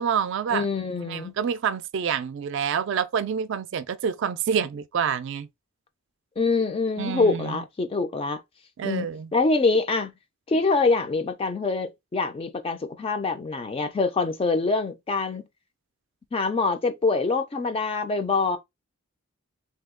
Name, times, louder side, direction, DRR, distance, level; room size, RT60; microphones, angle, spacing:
voice 1, 0.0-0.7 1.0-5.5 7.0-7.6 8.8-9.3, right 7 dB, 55° right, 0.3 m, -27 dB
voice 2, 0.5-1.3 6.4-8.4 8.8-10.1 10.5-15.4 16.3-18.6, left 3 dB, 25° left, 0.3 m, -25 dB
2.8 x 2.2 x 3.6 m
head